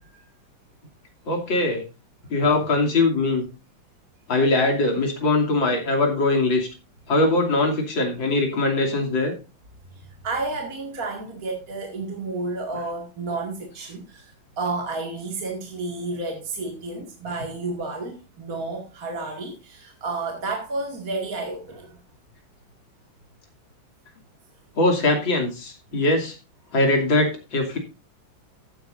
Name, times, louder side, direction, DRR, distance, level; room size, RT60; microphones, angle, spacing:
voice 1, 1.3-1.8 2.3-3.5 4.3-6.7 7.1-9.3 24.8-26.4 26.7-27.8, left 2 dB, 75° left, 1 dB, 3.6 m, -21 dB
voice 2, 9.9-22.0, right 3 dB, 45° right, 1 dB, 2.5 m, -31 dB
15.0 x 9.8 x 2.6 m, 0.31 s
omnidirectional pair, 2.1 m